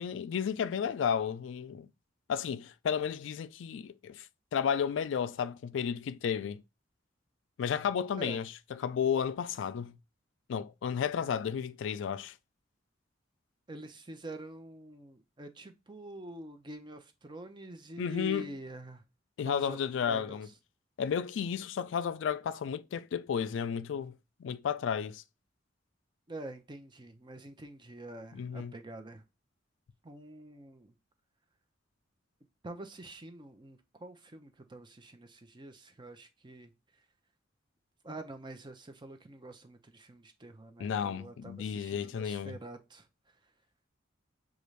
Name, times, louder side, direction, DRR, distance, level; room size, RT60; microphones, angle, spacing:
voice 1, 0.0-1.9 2.3-4.3 4.5-6.6 7.6-9.9 10.5-12.3 18.0-18.5 19.4-20.5 21.0-24.1 24.4-25.2 28.3-28.7 40.8-42.6, left 7 dB, 70° left, 0.3 m, -33 dB
voice 2, 13.7-19.0 19.4-19.8 20.1-20.5 26.3-29.2 30.0-30.9 32.6-36.7 38.0-43.1, right 1 dB, 25° right, 0.6 m, -46 dB
6.7 x 2.5 x 3.1 m
head